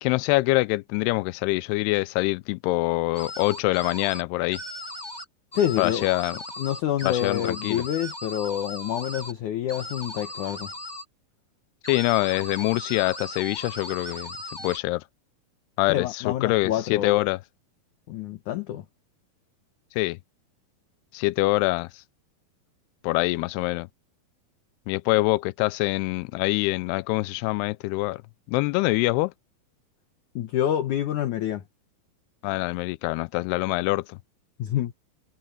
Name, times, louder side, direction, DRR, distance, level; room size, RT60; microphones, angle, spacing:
voice 1, 0.0-4.6 5.8-6.4 7.0-7.8 11.9-14.4 14.6-15.0 15.8-17.4 19.9-20.2 21.1-22.0 23.0-23.9 24.9-28.2 28.5-29.3 32.4-34.2, left 21 dB, 90° left, 2.6 m, -25 dB
sound 1, 3.1-4.2 4.5-5.2 5.5-9.3 9.7-11.0 11.8-14.8, left 1 dB, 40° left, 0.3 m, -38 dB
voice 2, 5.5-6.1 6.6-10.7 15.9-17.2 18.1-18.8 30.4-31.6 34.6-34.9, left 11 dB, 70° left, 2.1 m, -27 dB
omnidirectional pair, 4.6 m